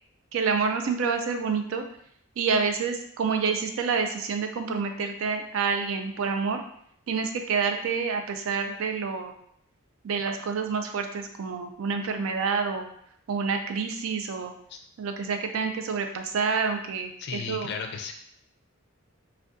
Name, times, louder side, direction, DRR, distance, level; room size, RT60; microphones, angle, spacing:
voice 1, 0.3-1.8 2.4-6.6 7.1-9.3 10.0-12.8 13.3-14.5 15.0-17.7, right 5 dB, 75° right, 5 dB, 0.4 m, -28 dB
voice 2, 17.2-18.1, left 5 dB, 55° left, 5 dB, 0.4 m, -34 dB
3.5 x 2.2 x 2.6 m, 0.67 s
head